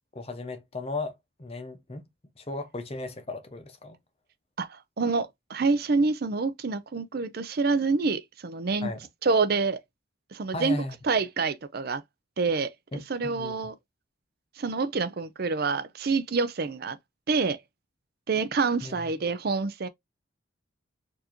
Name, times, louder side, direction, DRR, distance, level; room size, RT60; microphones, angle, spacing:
voice 1, 0.1-1.1 1.4-2.0 2.4-4.0 8.8-9.0 10.5-11.0 12.9-13.5 18.8-19.0, left 2 dB, 30° left, 0.7 m, -36 dB
voice 2, 4.6-8.9 9.2-9.8 10.3-10.8 11.0-12.0 12.4-12.7 13.1-13.7 14.6-17.0 17.3-17.6 18.3-19.9, right 4 dB, 50° right, 0.5 m, -27 dB
4.5 x 2.7 x 2.9 m
head